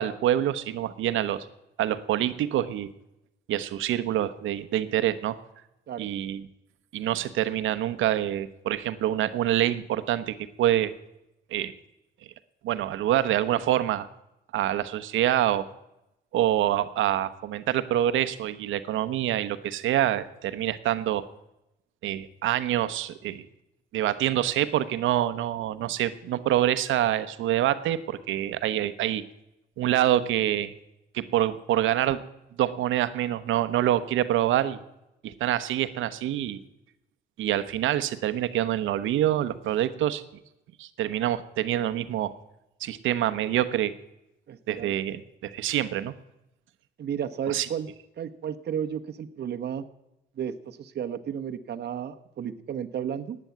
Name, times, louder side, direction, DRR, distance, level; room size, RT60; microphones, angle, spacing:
voice 1, 0.0-1.5 1.8-2.9 3.5-5.4 6.0-6.4 6.9-10.9 11.5-11.7 12.6-14.1 14.5-15.6 16.3-21.2 22.0-23.4 23.9-29.2 29.8-30.7 31.1-32.2 32.6-34.8 35.2-36.6 37.4-40.2 40.8-42.3 42.8-43.9 44.7-46.1 47.5-47.7, right 12 dB, 85° right, 12 dB, 1.1 m, -26 dB
voice 2, 44.5-44.9 47.0-47.9 48.2-49.8 50.4-53.4, right 8 dB, 55° right, 6 dB, 1.1 m, -33 dB
15.5 x 9.8 x 9.3 m, 0.89 s
cardioid pair, 90°, 20 cm